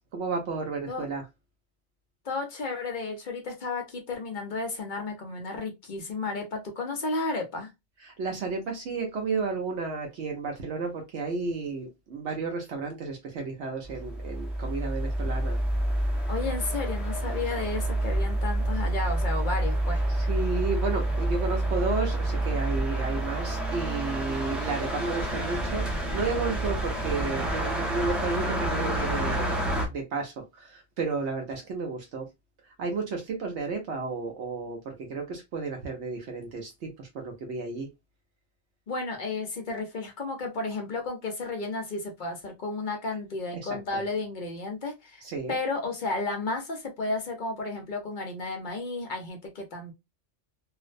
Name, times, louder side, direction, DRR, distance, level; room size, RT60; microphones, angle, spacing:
voice 1, 0.1-1.3 8.0-15.6 20.1-32.3 32.6-37.9 43.5-44.0 45.2-45.6, right 4 dB, 75° right, 0.9 m, -32 dB
voice 2, 2.2-7.7 16.3-20.0 38.9-45.2 45.5-49.9, left 3 dB, 50° left, 0.7 m, -33 dB
sound 1, 13.8-29.9, right 1 dB, ahead, 0.5 m, -28 dB
2.5 x 2.1 x 2.4 m
omnidirectional pair, 1.2 m